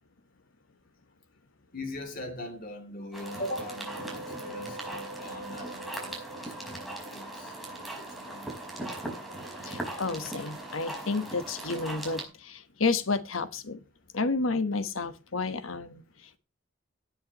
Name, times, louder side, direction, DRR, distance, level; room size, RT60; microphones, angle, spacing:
voice 1, 1.7-8.5, left 1 dB, 45° left, 2.9 m, -41 dB
sound 1, 3.1-12.2, right 1 dB, ahead, 4.9 m, -39 dB
voice 2, 9.6-13.8 14.1-16.0, left 3 dB, 85° left, 1.2 m, -31 dB
17.5 x 9.6 x 3.0 m
head